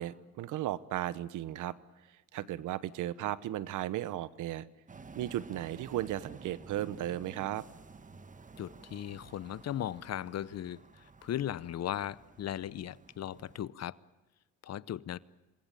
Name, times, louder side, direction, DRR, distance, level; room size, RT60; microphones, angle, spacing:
voice 1, 0.0-1.8 2.3-4.7 5.2-7.7, right 13 dB, 85° right, 1.0 m, -35 dB
sound 1, 4.9-13.7, right 4 dB, 25° right, 1.3 m, -52 dB
voice 2, 8.6-14.0 14.6-15.2, left 11 dB, 55° left, 0.8 m, -37 dB
27.0 x 21.0 x 9.1 m
cardioid pair, 90°, 30 cm